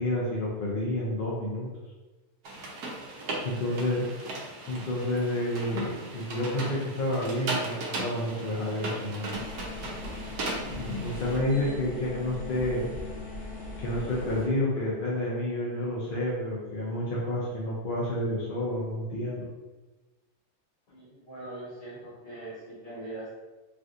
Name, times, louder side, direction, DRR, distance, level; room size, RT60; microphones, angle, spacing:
voice 1, 0.0-1.7 3.4-4.1 4.7-9.4 10.6-12.9 13.8-19.5, left 1 dB, 70° left, -5 dB, 0.5 m, -30 dB
sound 1, 2.4-11.4, right 2 dB, 85° right, 1.2 m, -37 dB
sound 2, 9.3-14.5, left 2 dB, 45° left, 1.1 m, -39 dB
voice 2, 20.9-23.4, right 2 dB, 25° left, -9 dB, 1.2 m, -42 dB
3.4 x 2.6 x 2.4 m, 1.2 s
omnidirectional pair, 1.6 m